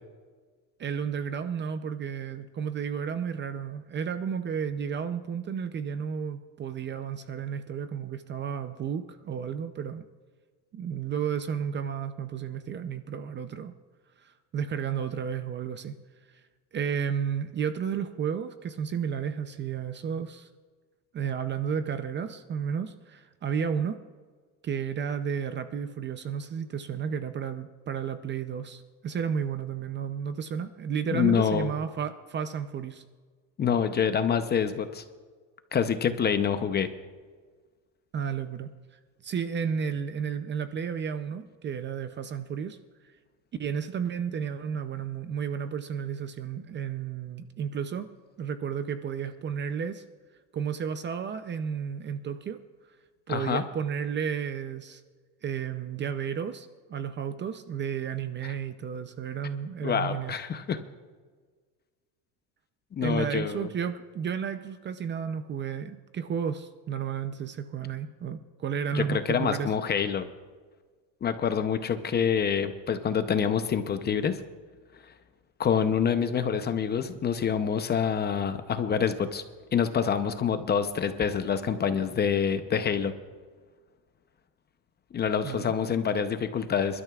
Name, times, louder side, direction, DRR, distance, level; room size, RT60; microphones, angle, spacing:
voice 1, 0.8-10.1 10.7-13.7 14.2-16.0 16.3-16.4 16.7-20.5 21.1-24.0 24.6-33.0 38.1-42.8 43.0-43.1 43.6-48.1 48.4-50.0 50.5-52.6 53.3-55.0 55.4-60.3 63.0-69.7 85.4-85.7, right 7 dB, 30° right, 10 dB, 0.5 m, -32 dB
voice 2, 31.1-31.7 33.6-35.0 35.7-36.9 53.3-53.6 59.8-60.8 63.0-63.7 68.9-70.2 71.2-74.4 75.6-79.4 79.7-83.1 85.1-87.0, left 7 dB, 25° left, 9 dB, 0.7 m, -26 dB
26.5 x 12.5 x 2.4 m, 1.5 s
cardioid pair, 145°, 40 cm